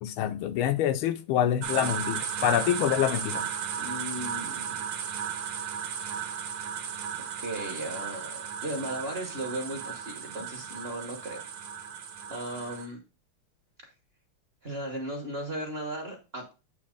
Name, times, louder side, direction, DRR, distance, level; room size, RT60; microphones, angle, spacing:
voice 1, 0.0-3.5, left 10 dB, 80° left, 1.4 m, -26 dB
sound 1, 1.6-12.9, right 8 dB, 80° right, 1.8 m, -35 dB
voice 2, 3.8-4.8 5.5-5.7 7.4-11.4 12.3-13.0 14.6-16.5, right 1 dB, 35° right, 1.1 m, -36 dB
8.3 x 3.0 x 5.1 m
omnidirectional pair, 2.4 m